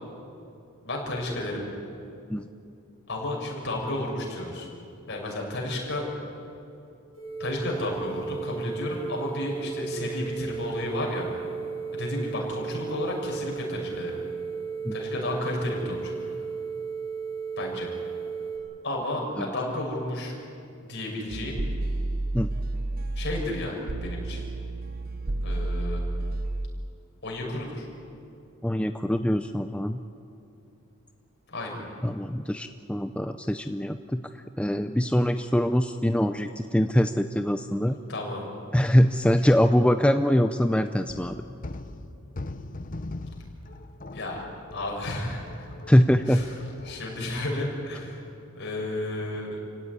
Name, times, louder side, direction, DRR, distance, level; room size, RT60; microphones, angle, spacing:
voice 1, 0.8-1.6 3.1-4.7 5.1-6.1 7.4-11.3 11.9-14.2 14.9-16.3 17.6-17.9 18.8-20.3 20.8-21.6 23.2-24.4 25.4-26.0 27.2-27.9 31.5-31.8 37.9-38.5 44.1-44.4 44.7-45.7 46.3-46.5 46.8-48.2 48.5-49.6, left 1 dB, 55° left, -1 dB, 6.6 m, -32 dB
sound 1, 7.1-18.6, right 5 dB, 65° right, 6.6 m, -35 dB
sound 2, 21.3-26.7, right 2 dB, 45° right, 0.7 m, -31 dB
voice 2, 28.6-30.0 32.0-34.2 34.6-38.0 38.7-41.4 45.9-46.4, equal, 5° left, 8 dB, 0.5 m, -23 dB
sound 3, 41.1-47.0, left 2 dB, 40° left, 1.0 m, -40 dB
29.0 x 17.0 x 9.8 m, 2.7 s
head